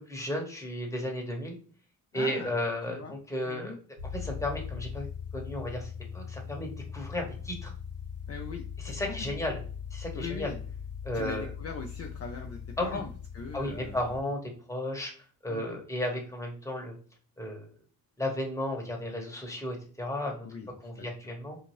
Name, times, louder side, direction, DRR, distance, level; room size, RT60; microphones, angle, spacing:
voice 1, 0.1-1.6 2.1-3.8 4.1-5.1 5.3-7.7 8.8-9.6 9.9-10.5 11.0-11.4 12.8-13.0 13.5-15.1 15.4-16.9 17.4-17.7 18.2-20.4 20.8-21.6, left 1 dB, 10° left, 0 dB, 1.1 m, -34 dB
voice 2, 2.1-2.5 2.9-3.1 3.5-3.8 8.3-9.3 10.1-10.6 11.1-14.1 15.5-15.8 20.4-20.7 21.0-21.1, left 5 dB, 40° left, 2 dB, 0.5 m, -40 dB
sound 1, 4.0-14.2, left 7 dB, 80° right, 1.3 m, -40 dB
2.7 x 2.4 x 3.0 m, 0.42 s
cardioid pair, 85°, 39 cm